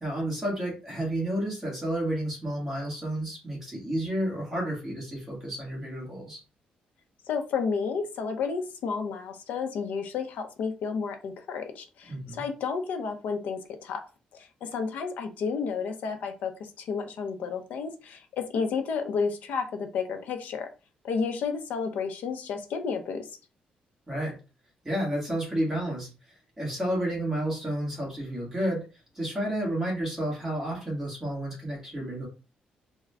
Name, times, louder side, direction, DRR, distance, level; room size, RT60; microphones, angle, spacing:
voice 1, 0.0-6.4 12.1-12.4 24.1-24.4 24.8-28.9 29.1-32.3, right 1 dB, 15° right, -3 dB, 1.6 m, -31 dB
voice 2, 7.3-14.0 14.3-20.7 21.0-23.3, left 5 dB, 75° left, 6 dB, 0.7 m, -31 dB
3.6 x 2.2 x 3.3 m, 0.32 s
cardioid pair, 170°, 3 cm